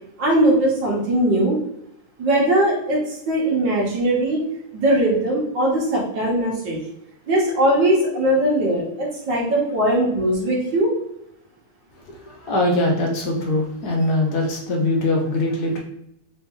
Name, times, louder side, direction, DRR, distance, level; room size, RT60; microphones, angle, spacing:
voice 1, 0.2-1.6 2.2-4.4 4.7-6.8 7.3-10.9, right 1 dB, 60° right, -3 dB, 1.7 m, -20 dB
voice 2, 12.0-15.8, left 1 dB, 65° left, 0 dB, 1.0 m, -22 dB
3.9 x 2.9 x 3.5 m, 0.78 s
omnidirectional pair, 2.4 m